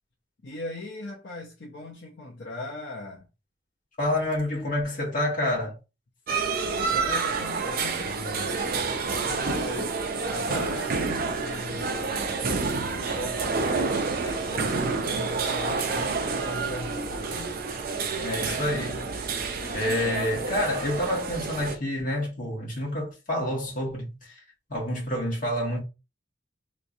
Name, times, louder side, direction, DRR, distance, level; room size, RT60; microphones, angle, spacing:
voice 1, 0.4-3.3 6.6-9.9 10.2-12.3 12.9-17.5, left 1 dB, 65° left, 0.7 m, -39 dB
voice 2, 4.0-5.8 18.2-19.3 19.7-24.1 24.7-25.8, left 1 dB, 50° left, 1.6 m, -28 dB
sound 1, 6.3-21.8, right 4 dB, 55° right, 0.6 m, -29 dB
3.3 x 3.1 x 2.6 m
head